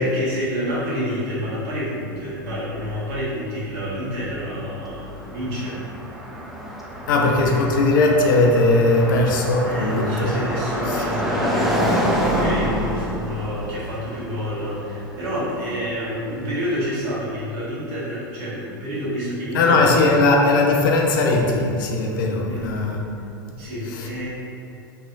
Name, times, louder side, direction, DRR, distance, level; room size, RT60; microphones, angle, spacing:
voice 1, 0.0-5.8 7.2-7.8 9.6-19.8 20.1-20.2 22.5-22.7 23.6-24.3, equal, 55° right, -8 dB, 1.3 m, -28 dB
Car passing by, 4.5-16.5, equal, ahead, 0.4 m, -27 dB
voice 2, 7.1-10.4 10.9-11.0 19.5-23.1 23.5-24.1, left 2 dB, 65° left, 0 dB, 0.5 m, -19 dB
3.1 x 3.0 x 2.4 m, 2.6 s
hypercardioid pair, 90°, 11 cm